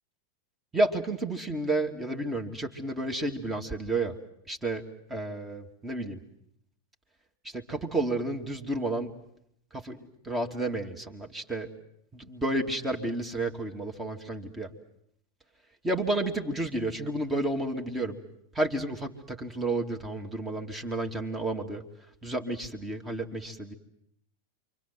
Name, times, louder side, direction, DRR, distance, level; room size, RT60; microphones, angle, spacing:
voice 1, 0.7-4.1 4.5-4.8 5.1-6.2 7.5-9.1 9.7-11.7 12.1-14.7 15.8-18.2 18.6-21.8 22.2-23.7, right 2 dB, 15° right, 3 dB, 2.3 m, -31 dB
28.0 x 24.5 x 7.6 m, 0.73 s
figure-of-eight pair, 90°, 0 cm